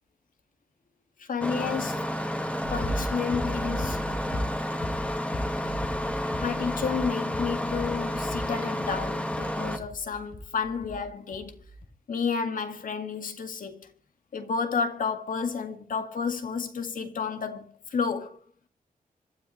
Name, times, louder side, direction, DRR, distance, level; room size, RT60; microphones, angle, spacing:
voice 1, 1.2-2.1 2.7-4.0 6.4-11.6 12.1-13.9 14.3-18.4, left 5 dB, 65° left, 2.2 m, -31 dB
Engine starting, 1.4-9.8, equal, 10° left, 1.7 m, -31 dB
sound 1, 2.6-11.1 11.3-11.9, equal, 80° left, 4.0 m, -37 dB
26.0 x 13.0 x 3.3 m
wide cardioid pair, 145°, 15 cm